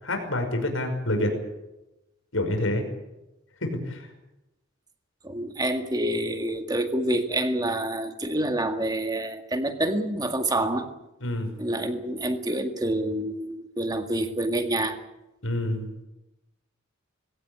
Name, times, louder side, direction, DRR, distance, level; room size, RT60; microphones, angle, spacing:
voice 1, 0.0-1.3 2.3-2.8 3.6-4.1 11.2-11.5 15.4-15.9, left 1 dB, 85° left, 5 dB, 5.7 m, -27 dB
voice 2, 5.2-10.9 11.6-15.0, right 1 dB, 20° right, 6 dB, 1.9 m, -27 dB
21.0 x 17.5 x 8.8 m, 0.95 s
head